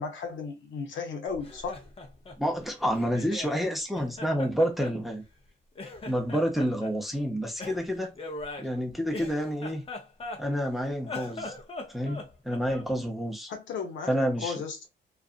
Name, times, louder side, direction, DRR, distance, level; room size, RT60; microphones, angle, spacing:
voice 1, 0.0-1.8 13.5-14.9, left 5 dB, 70° left, 0.9 m, -35 dB
Laughter, 1.3-3.6 3.9-5.5 5.7-6.9 7.6-10.7 11.0-12.9, left 2 dB, 30° left, 0.7 m, -41 dB
voice 2, 2.4-5.2 6.0-8.2 8.6-9.8 10.4-11.5 11.9-13.5 14.1-14.5, equal, ahead, 0.8 m, -29 dB
2.5 x 2.5 x 2.4 m
cardioid pair, 90°, 20 cm